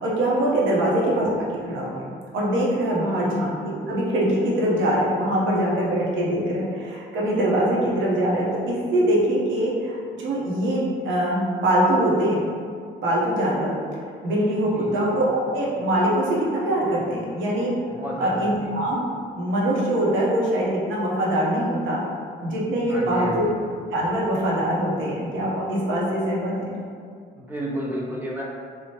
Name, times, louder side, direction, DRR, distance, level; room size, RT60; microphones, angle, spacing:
voice 1, 0.0-12.4 13.0-13.8 14.0-17.7 18.2-19.0 19.4-22.0 22.4-23.5 23.9-26.8, right 1 dB, 80° right, -5 dB, 0.7 m, -23 dB
voice 2, 3.1-3.4 14.7-15.1 17.9-18.7 22.9-23.5 27.4-28.4, equal, 10° right, -4 dB, 0.5 m, -32 dB
3.0 x 2.1 x 2.8 m, 2.2 s
cardioid pair, 90°, 20 cm